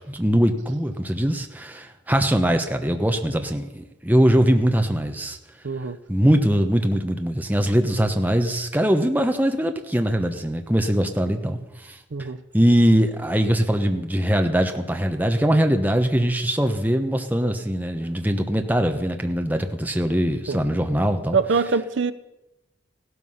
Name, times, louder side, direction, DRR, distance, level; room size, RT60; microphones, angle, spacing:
voice 1, 0.1-5.4 6.1-12.0 12.5-21.4, equal, 10° right, 5 dB, 1.0 m, -21 dB
voice 2, 5.6-6.0 12.1-12.4 20.5-20.6 21.3-22.1, right 5 dB, 70° right, 13 dB, 0.6 m, -23 dB
16.0 x 12.5 x 5.7 m, 0.97 s
head